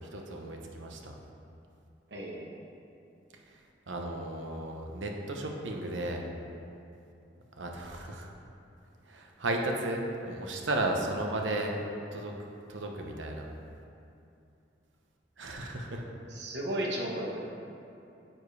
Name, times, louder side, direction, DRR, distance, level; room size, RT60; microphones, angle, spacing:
voice 1, 0.1-1.1 3.9-6.2 7.6-8.3 9.1-11.7 12.1-12.3 12.7-13.5 15.4-16.0, right 2 dB, 80° right, 1 dB, 1.0 m, -34 dB
voice 2, 2.1-2.5 16.3-17.5, right 1 dB, 65° right, -1 dB, 1.2 m, -34 dB
9.6 x 7.4 x 3.3 m, 2.7 s
head